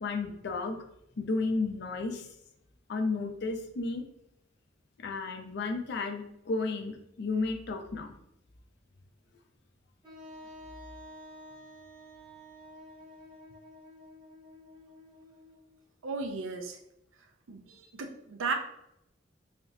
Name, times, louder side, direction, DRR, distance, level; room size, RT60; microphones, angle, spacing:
voice 1, 0.0-0.8 1.2-2.3 2.9-4.0 5.0-8.1, left 3 dB, 60° left, 4 dB, 0.5 m, -33 dB
Wind instrument woodwind instrument, 10.0-15.8, equal, 25° right, 1.0 m, -50 dB
voice 2, 16.0-16.8 17.5-18.5, right 4 dB, 85° right, 5 dB, 0.5 m, -35 dB
3.3 x 2.8 x 2.7 m, 0.80 s
head